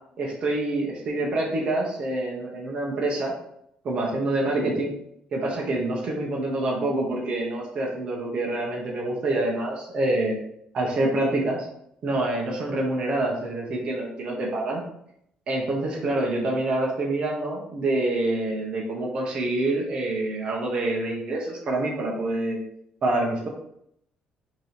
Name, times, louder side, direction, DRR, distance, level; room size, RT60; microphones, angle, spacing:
voice 1, 0.2-3.3 3.8-4.9 5.3-10.4 10.7-11.6 12.0-14.8 15.5-22.6 23.0-23.5, right 2 dB, 40° right, -2 dB, 1.0 m, -26 dB
5.3 x 3.0 x 3.3 m, 0.73 s
cardioid pair, 160°, 3 cm